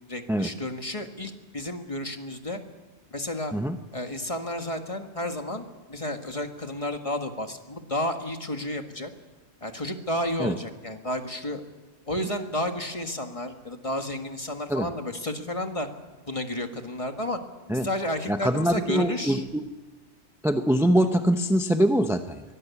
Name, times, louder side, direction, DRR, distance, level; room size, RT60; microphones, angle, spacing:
voice 1, 0.0-2.6 3.1-3.5 3.9-9.1 9.6-11.6 12.1-15.9 16.3-17.4 17.7-19.4, left 1 dB, 30° left, 5 dB, 1.7 m, -32 dB
voice 2, 18.3-19.6 20.4-22.4, right 1 dB, 5° right, 7 dB, 0.7 m, -23 dB
23.0 x 17.5 x 8.4 m, 1.2 s
omnidirectional pair, 1.2 m